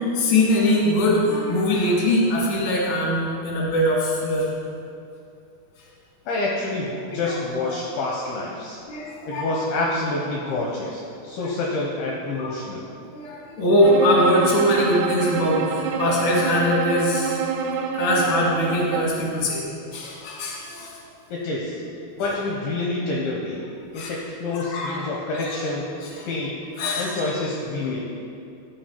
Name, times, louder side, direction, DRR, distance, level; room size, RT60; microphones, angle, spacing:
voice 1, 0.0-4.5 7.1-7.7 8.9-9.5 11.4-11.5 12.4-12.5 13.0-17.4 17.9-19.6 19.9-21.0 22.2-22.4 23.9-24.1 24.5-25.6 26.0-26.3 26.8-27.2, left 1 dB, 45° left, -4 dB, 2.1 m, -22 dB
voice 2, 6.3-8.8 9.3-12.8 21.3-21.8 22.2-23.6 23.9-25.9 26.2-26.6 27.0-28.0, left 2 dB, 75° left, -2 dB, 2.4 m, -27 dB
Bowed string instrument, 13.8-19.2, right 6 dB, 85° right, 3.0 m, -27 dB
14.5 x 5.2 x 4.4 m, 2.6 s
omnidirectional pair, 5.3 m